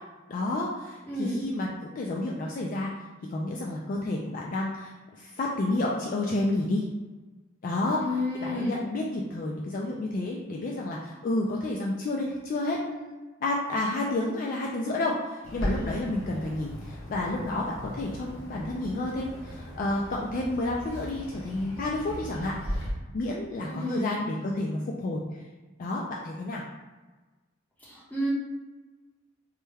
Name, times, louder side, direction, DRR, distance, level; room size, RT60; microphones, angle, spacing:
voice 1, 0.3-1.7 1.9-3.0 3.3-6.8 7.6-8.0 8.4-25.2 25.8-26.6, left 2 dB, 40° left, -2 dB, 0.3 m, -30 dB
voice 2, 1.1-1.5 8.0-8.9 23.6-24.1 27.8-28.3, left 1 dB, 10° left, -7 dB, 0.9 m, -31 dB
Bird, 15.4-22.9, equal, 70° left, 0.8 m, -38 dB
3.1 x 2.2 x 3.3 m, 1.2 s
head